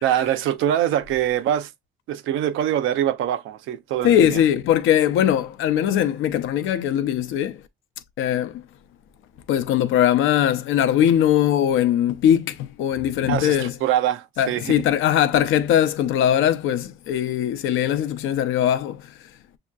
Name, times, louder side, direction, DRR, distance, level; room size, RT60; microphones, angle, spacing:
voice 1, 0.0-1.7 2.1-4.4 13.3-14.7, right 11 dB, 85° right, 0.6 m, -23 dB
voice 2, 4.0-7.6 8.2-8.6 9.5-13.8 14.4-19.1, left 10 dB, 85° left, 0.6 m, -20 dB
6.3 x 2.8 x 2.3 m
cardioid pair, 90°, 20 cm